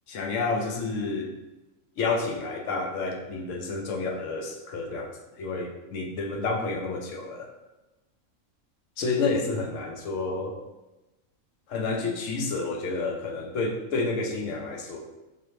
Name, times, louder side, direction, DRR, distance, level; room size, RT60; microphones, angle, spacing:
voice 1, 0.1-1.3 2.0-5.1 5.4-7.5 9.0-10.5 11.7-15.0, left 3 dB, 65° left, 0 dB, 0.9 m, -29 dB
4.0 x 2.7 x 3.1 m, 1.0 s
omnidirectional pair, 1.5 m